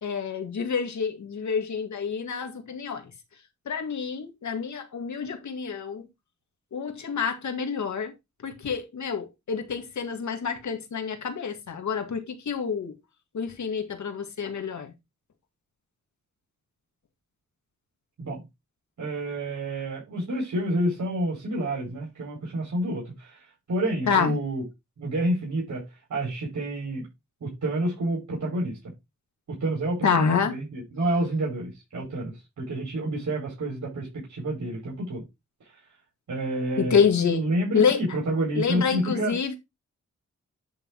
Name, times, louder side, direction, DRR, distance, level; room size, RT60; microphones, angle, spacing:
voice 1, 0.0-3.0 3.7-6.1 6.7-8.1 8.4-12.9 13.3-14.9 24.1-24.4 30.0-30.6 36.8-37.4 37.7-38.0 38.5-39.6, left 6 dB, 80° left, 2.1 m, -27 dB
voice 2, 19.0-24.6 25.0-25.8 26.1-27.1 27.4-28.8 29.6-35.2 36.3-37.0 37.3-39.6, right 1 dB, 85° right, 4.8 m, -29 dB
9.9 x 3.7 x 4.6 m
cardioid pair, 70°, 29 cm